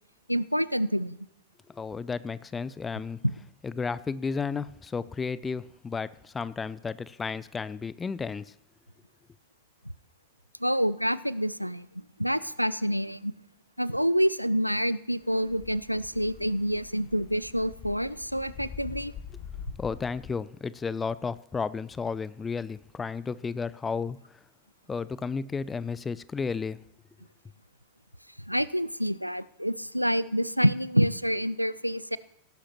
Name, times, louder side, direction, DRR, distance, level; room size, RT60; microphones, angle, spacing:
voice 1, 0.3-1.2 10.6-13.3 13.8-19.1 28.5-32.2, equal, 90° right, 18 dB, 0.3 m, -27 dB
voice 2, 1.7-3.2 3.6-8.5 19.8-24.2 24.9-26.8, left 5 dB, 15° left, 18 dB, 0.4 m, -33 dB
sound 1, 15.3-20.3, left 7 dB, 35° left, 1.0 m, -44 dB
17.5 x 11.5 x 3.0 m, 0.77 s
figure-of-eight pair, 90°, 0 cm